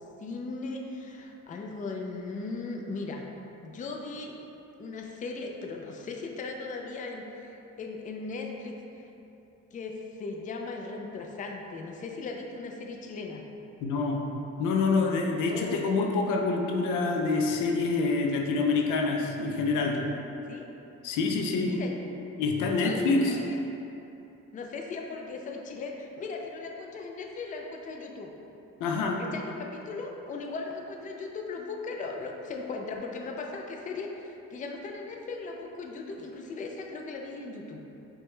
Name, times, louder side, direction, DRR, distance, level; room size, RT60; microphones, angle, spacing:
voice 1, 0.2-3.3 3.6-4.4 4.8-9.1 9.7-13.4 15.5-15.8 20.5-20.7 21.6-22.0 22.7-23.6 24.5-28.3 29.2-37.8, left 3 dB, 25° left, 1 dB, 0.3 m, -38 dB
voice 2, 13.8-14.3 14.6-20.0 21.0-21.7 22.4-23.4 28.8-29.2, left 3 dB, 85° left, 2 dB, 0.5 m, -26 dB
4.7 x 2.2 x 3.1 m, 2.9 s
cardioid pair, 90°, 30 cm